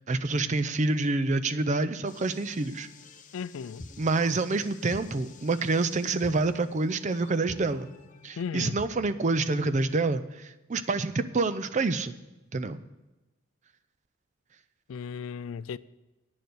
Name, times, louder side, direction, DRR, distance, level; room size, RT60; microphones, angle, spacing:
voice 1, 0.0-2.9 4.0-7.9 8.2-12.1 12.5-12.8, right 3 dB, 35° right, 0.4 m, -27 dB
sound 1, 2.1-9.5, left 2 dB, 40° left, 0.7 m, -48 dB
voice 2, 3.3-3.8 8.4-8.8 14.9-15.8, left 6 dB, 75° left, 0.3 m, -35 dB
9.4 x 6.8 x 7.8 m
head